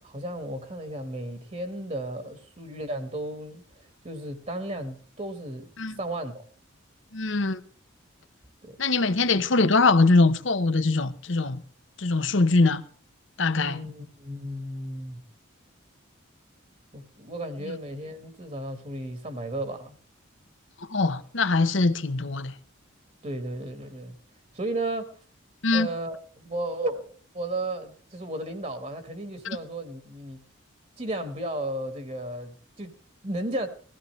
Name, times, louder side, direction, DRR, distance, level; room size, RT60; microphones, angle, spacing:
voice 1, 0.0-6.4 8.6-8.8 13.6-15.2 16.9-20.0 23.2-24.2 24.5-25.2 25.7-30.4 31.0-33.0 33.2-33.7, right 1 dB, 35° right, 1.4 m, -34 dB
voice 2, 7.1-7.6 8.8-11.6 12.0-12.8 13.4-13.8 20.9-22.5 25.6-25.9 29.4-29.6, left 3 dB, 70° left, 1.0 m, -22 dB
20.5 x 15.0 x 3.2 m
head